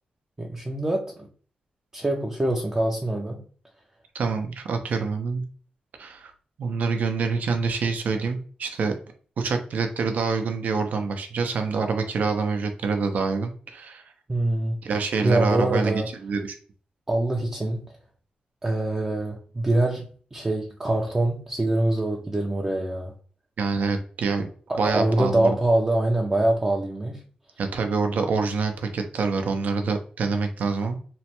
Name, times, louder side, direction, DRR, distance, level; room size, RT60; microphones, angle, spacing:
voice 1, 0.4-1.1 1.9-3.4 14.3-14.8 15.2-16.1 17.1-17.8 18.6-20.0 20.3-23.1 24.7-27.2, right 1 dB, 20° right, -1 dB, 0.4 m, -24 dB
voice 2, 4.1-5.4 6.0-6.3 6.6-8.9 9.4-14.0 14.8-16.5 23.6-24.5 24.8-25.6 27.6-31.0, right 4 dB, 70° right, 6 dB, 0.5 m, -26 dB
3.1 x 2.1 x 2.9 m, 0.43 s
wide cardioid pair, 105°, 3 cm